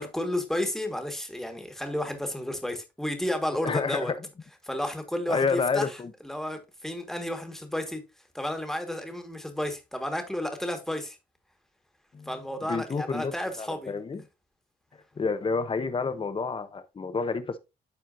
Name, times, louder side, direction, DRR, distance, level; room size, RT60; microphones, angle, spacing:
voice 1, 0.0-4.1 4.6-6.0 6.2-8.0 8.3-11.2 12.2-13.9, left 1 dB, ahead, 1.6 m, -32 dB
voice 2, 3.6-4.1 5.3-6.1 12.1-12.3 12.7-13.3 13.6-14.2 15.2-17.6, left 4 dB, 30° left, 0.9 m, -29 dB
12.5 x 4.4 x 2.6 m
cardioid pair, 115°, 18 cm